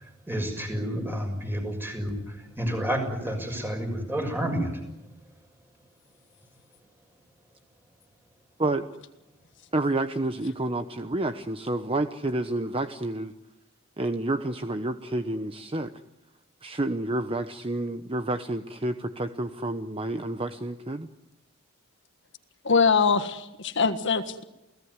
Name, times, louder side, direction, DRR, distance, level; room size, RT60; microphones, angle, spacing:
voice 1, 0.0-4.7, equal, 10° right, 4 dB, 6.4 m, -30 dB
voice 2, 9.7-13.3 14.0-15.9 16.6-21.1, right 2 dB, 25° right, 9 dB, 1.0 m, -29 dB
voice 3, 22.6-24.4, left 5 dB, 55° left, 8 dB, 1.6 m, -23 dB
29.5 x 18.0 x 9.7 m, 0.96 s
head